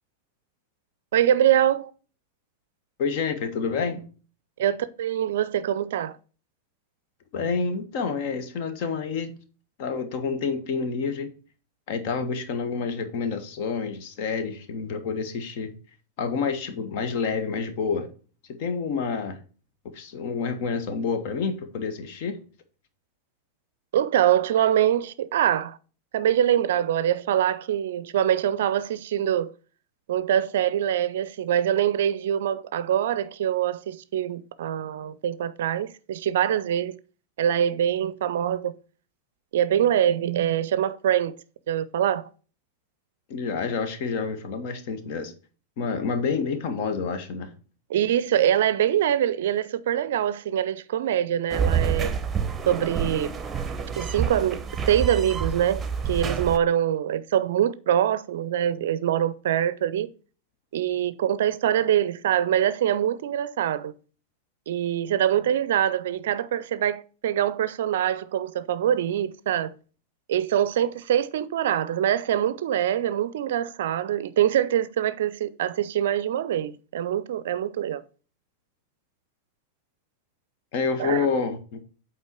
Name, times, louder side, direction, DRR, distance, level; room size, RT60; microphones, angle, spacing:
voice 1, 1.1-1.9 4.6-6.2 23.9-25.8 26.1-29.5 30.1-36.9 37.4-38.7 39.5-41.3 41.7-42.3 47.9-52.1 52.7-53.3 54.0-54.6 54.9-55.8 56.1-60.1 60.7-63.9 64.7-69.7 70.3-78.0 81.0-81.3, right 10 dB, 60° right, 0.5 m, -24 dB
voice 2, 3.0-4.1 7.3-9.3 9.8-11.3 11.9-15.7 16.2-18.1 18.6-19.4 19.9-22.4 43.3-45.3 45.8-47.5 80.7-81.8, left 5 dB, 50° left, 1.3 m, -28 dB
sound 1, 51.5-56.6, right 6 dB, 15° right, 0.9 m, -28 dB
8.1 x 4.3 x 4.5 m
figure-of-eight pair, 90°, 0 cm